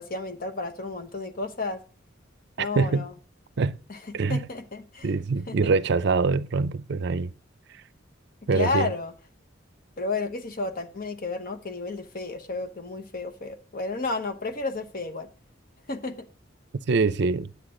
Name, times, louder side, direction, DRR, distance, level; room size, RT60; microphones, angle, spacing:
voice 1, 0.0-1.8 2.6-3.1 3.9-4.0 4.3-5.1 5.5-5.7 8.5-9.1 10.0-15.3 15.9-16.3, left 3 dB, 50° left, 0.9 m, -32 dB
voice 2, 2.6-3.1 3.6-3.8 4.1-4.4 5.0-7.3 8.5-8.9 16.9-17.5, right 4 dB, 60° right, 0.5 m, -24 dB
9.9 x 8.2 x 3.8 m
head